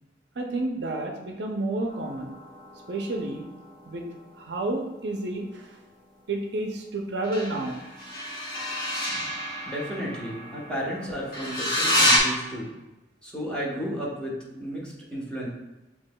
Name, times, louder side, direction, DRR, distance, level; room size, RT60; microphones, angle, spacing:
voice 1, 0.4-2.3 2.9-3.5 3.9-4.1 4.4-5.7 6.3-7.8, right 2 dB, 70° right, 2 dB, 0.6 m, -30 dB
sound 1, 1.9-4.9 7.2-12.2, equal, 50° left, 1.4 m, -29 dB
voice 2, 9.7-12.7 13.2-15.5, equal, 5° left, -5 dB, 0.9 m, -33 dB
7.1 x 2.9 x 2.2 m, 1.0 s
head